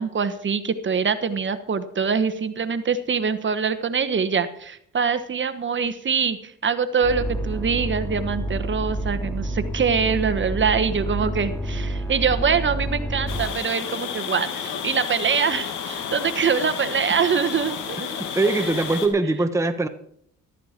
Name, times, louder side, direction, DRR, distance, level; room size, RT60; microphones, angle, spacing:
voice 1, 0.0-18.1 18.6-18.7, right 6 dB, 40° right, 11 dB, 1.1 m, -24 dB
sound 1, 7.0-13.5, right 1 dB, 10° left, 2.5 m, -28 dB
sound 2, 13.3-19.1, left 7 dB, 90° left, 2.0 m, -31 dB
voice 2, 18.3-19.9, right 2 dB, 10° right, 7 dB, 0.9 m, -21 dB
14.0 x 12.5 x 4.4 m, 0.66 s
cardioid pair, 90°, 30 cm